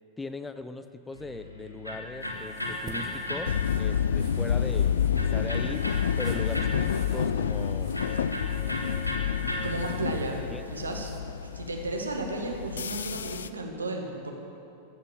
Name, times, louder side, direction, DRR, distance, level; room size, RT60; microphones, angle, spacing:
voice 1, 0.2-5.9 6.2-7.9 10.1-10.2 10.5-10.6, left 2 dB, 10° left, 10 dB, 0.5 m, -39 dB
Electric guitar, 1.1-10.2, left 1 dB, 85° left, 1.6 m, -37 dB
sound 1, 2.2-11.2, right 5 dB, 35° right, 1.3 m, -51 dB
sound 2, 3.5-13.5, left 8 dB, 65° left, 0.4 m, -29 dB
voice 2, 9.6-10.4 10.7-11.1 11.5-14.3, right 2 dB, 75° right, 2 dB, 1.6 m, -33 dB
14.0 x 8.1 x 7.2 m, 2.7 s
figure-of-eight pair, 90°, 0 cm